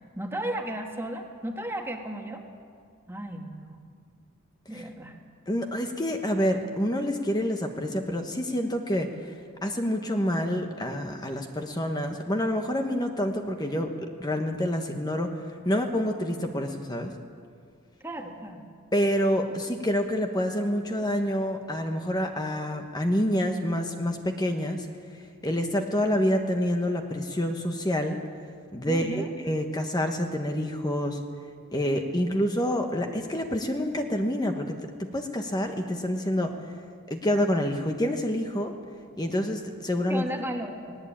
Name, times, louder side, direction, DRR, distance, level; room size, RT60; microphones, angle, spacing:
voice 1, 0.0-2.4 3.1-3.8 4.7-5.2 18.0-18.6 28.8-29.3 40.1-41.1, right 1 dB, 10° right, 2 dB, 1.9 m, -34 dB
voice 2, 5.5-9.3 9.6-13.9 14.2-15.3 15.6-17.1 18.9-24.8 25.1-28.2 28.7-31.2 31.7-36.5 37.1-38.7 39.2-40.2, equal, 20° left, 4 dB, 1.2 m, -27 dB
20.0 x 18.5 x 8.7 m, 2.2 s
head